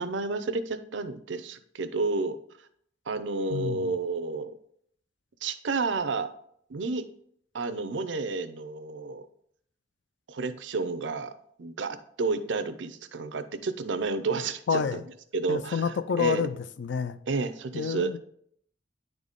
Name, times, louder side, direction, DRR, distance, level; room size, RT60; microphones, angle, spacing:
voice 1, 0.0-2.4 3.1-4.5 5.4-6.3 6.7-7.0 7.5-9.3 10.3-11.3 11.6-15.0 15.3-16.5 17.3-18.2, right 3 dB, 90° right, 0.6 m, -31 dB
voice 2, 3.5-3.9 14.7-15.0 15.5-17.2 17.7-18.2, left 6 dB, 75° left, 0.4 m, -29 dB
9.6 x 4.0 x 3.6 m
head